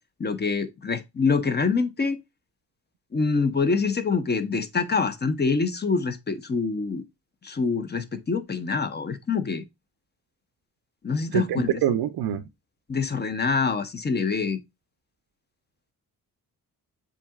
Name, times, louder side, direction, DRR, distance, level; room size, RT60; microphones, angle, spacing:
voice 1, 0.2-2.2 3.1-7.0 7.4-9.6 11.0-11.8 12.9-14.6, left 4 dB, 25° left, 0.6 m, -25 dB
voice 2, 11.3-12.4, right 10 dB, 85° right, 0.5 m, -25 dB
7.2 x 2.8 x 2.3 m
cardioid pair, 90°, 37 cm